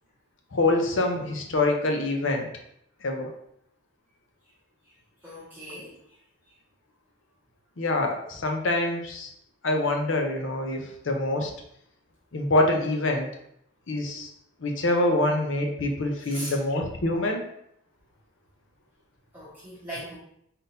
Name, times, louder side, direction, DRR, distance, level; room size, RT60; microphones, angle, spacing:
voice 1, 0.5-2.5 3.0-3.3 7.8-9.3 9.6-11.5 12.3-13.3 13.9-14.3 14.6-17.4, left 2 dB, 70° left, 3 dB, 0.7 m, -25 dB
voice 2, 5.2-6.0 16.2-16.6 19.3-20.2, equal, 10° right, -10 dB, 1.1 m, -39 dB
4.0 x 3.7 x 2.6 m, 0.73 s
head